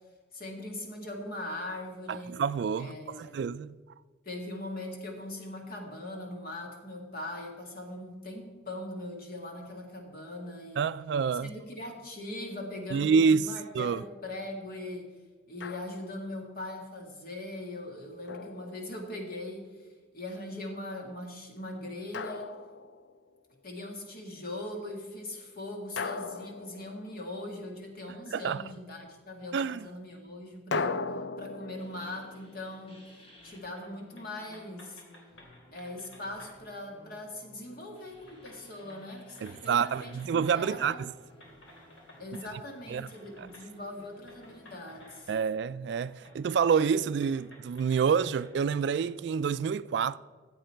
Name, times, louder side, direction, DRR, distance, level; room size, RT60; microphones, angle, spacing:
voice 1, 0.3-2.4 2.8-3.4 4.3-10.9 11.4-15.1 15.5-19.9 20.1-22.5 23.6-30.9 31.4-33.0 33.4-35.0 35.7-40.3 40.5-41.1 42.2-45.3, left 1 dB, 50° left, 1.9 m, -40 dB
voice 2, 2.1-3.8 10.8-11.6 12.9-13.5 13.7-14.0 28.3-28.6 29.5-29.9 39.4-41.1 42.9-43.1 43.4-43.5 45.3-50.2, right 6 dB, 60° right, 0.3 m, -28 dB
Drum, 15.6-16.3 18.3-19.4 22.1-23.3 26.0-27.6 30.7-33.7, left 4 dB, 65° left, 0.5 m, -38 dB
sound 1, 31.7-45.2, equal, 30° left, 1.8 m, -57 dB
sound 2, 33.5-33.9 34.1-36.5 37.7-37.8 38.2-41.1 41.4-42.5 43.0-43.7 44.3-45.5 45.9-46.4 46.6-49.1, left 1 dB, 90° left, 2.8 m, -56 dB
14.0 x 8.0 x 4.4 m
head